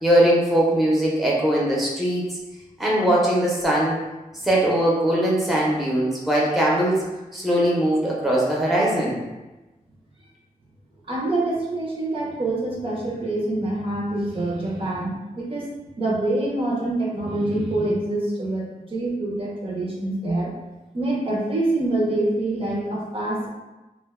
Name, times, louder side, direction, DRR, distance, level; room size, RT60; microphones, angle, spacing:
voice 1, 0.0-2.2 2.8-4.0 4.4-7.0 7.3-9.2, right 1 dB, ahead, -5 dB, 0.6 m, -20 dB
voice 2, 11.1-15.7 16.0-20.5 20.9-23.5, right 2 dB, 40° right, -4 dB, 0.6 m, -25 dB
2.4 x 2.2 x 3.5 m, 1.1 s
wide cardioid pair, 125°, 14 cm